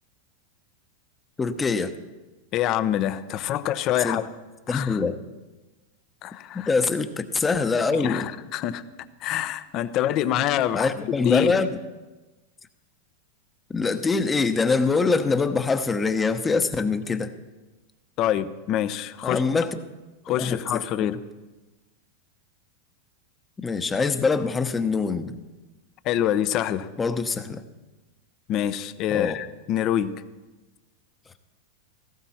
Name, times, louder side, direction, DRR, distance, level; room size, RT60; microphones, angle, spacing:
voice 1, 1.4-1.9 4.0-4.2 4.7-5.2 6.5-8.3 10.7-11.7 13.7-17.3 19.2-19.8 20.3-21.2 23.6-25.3 27.0-27.6 29.1-29.4, left 4 dB, 15° left, 9 dB, 1.0 m, -24 dB
voice 2, 2.5-4.3 4.7-5.0 6.2-6.7 7.9-8.8 9.2-11.6 18.2-19.4 20.3-21.2 26.0-26.9 28.5-30.2, left 11 dB, 45° left, 13 dB, 0.8 m, -26 dB
17.0 x 14.5 x 4.3 m, 1.2 s
hypercardioid pair, 115°, 0 cm